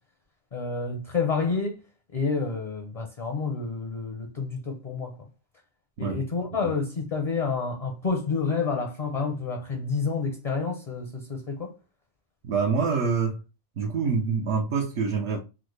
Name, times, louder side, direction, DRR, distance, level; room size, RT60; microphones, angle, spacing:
voice 1, 0.5-1.8 2.1-5.3 6.0-11.7, left 4 dB, 45° left, 0.5 m, -29 dB
voice 2, 12.4-13.4 13.8-15.4, right 5 dB, 75° right, 0.9 m, -26 dB
3.5 x 2.0 x 3.1 m
omnidirectional pair, 1.2 m